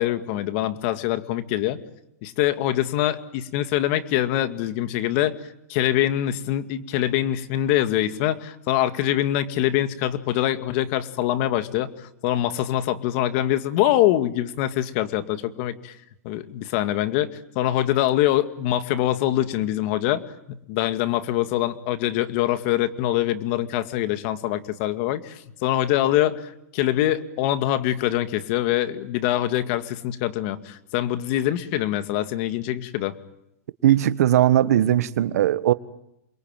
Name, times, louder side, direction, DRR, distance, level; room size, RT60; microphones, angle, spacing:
voice 1, 0.0-1.8 2.2-5.4 5.7-16.0 16.2-20.2 20.5-33.2, left 13 dB, 50° left, 2.2 m, -24 dB
voice 2, 33.8-35.7, right 12 dB, 70° right, 1.4 m, -19 dB
28.5 x 23.0 x 9.2 m
supercardioid pair, 145°, 9 cm